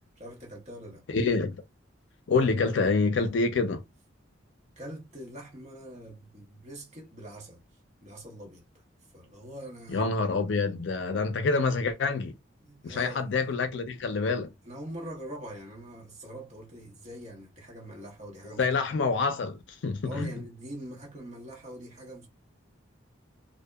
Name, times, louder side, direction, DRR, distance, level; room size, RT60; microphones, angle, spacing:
voice 1, 0.2-1.0 2.6-2.8 4.8-7.6 8.0-8.6 9.1-10.0 12.6-13.5 14.6-18.6 20.0-22.3, right 1 dB, 35° right, 0.9 m, -43 dB
voice 2, 1.1-1.6 2.3-3.8 9.9-12.3 12.8-14.5 18.6-20.3, left 4 dB, 65° left, 0.4 m, -27 dB
2.7 x 2.1 x 2.2 m
head